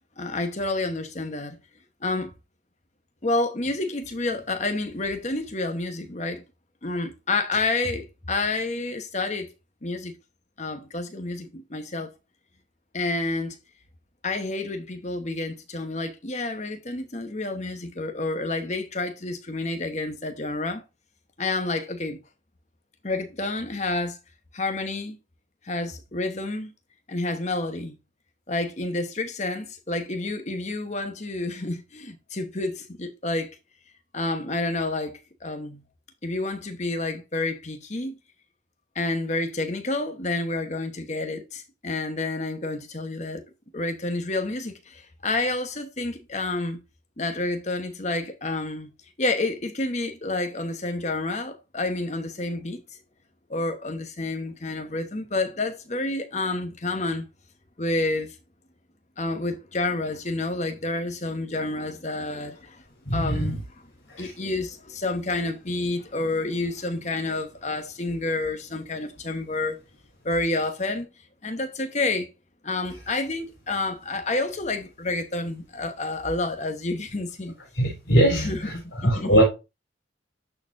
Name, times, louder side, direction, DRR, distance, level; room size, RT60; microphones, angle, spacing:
voice 1, 0.2-1.6 2.0-2.3 3.2-6.4 6.8-9.5 9.8-10.2 10.6-12.1 12.9-13.6 14.2-20.8 21.4-22.2 23.0-24.2 24.5-25.2 25.6-26.7 27.1-28.0 28.5-33.5 34.1-35.8 36.2-38.2 38.9-43.4 43.7-46.8 47.2-48.9 49.2-52.8 53.5-57.3 57.8-58.3 59.2-62.8 63.1-63.6 64.2-69.8 70.2-71.1 71.4-72.3 72.6-77.5 78.3-79.4, left 2 dB, 35° left, 1.1 m, -29 dB
voice 2, 63.0-63.6 64.1-64.3 77.7-78.8 79.0-79.4, equal, 70° left, 4.2 m, -21 dB
12.5 x 4.4 x 2.6 m
head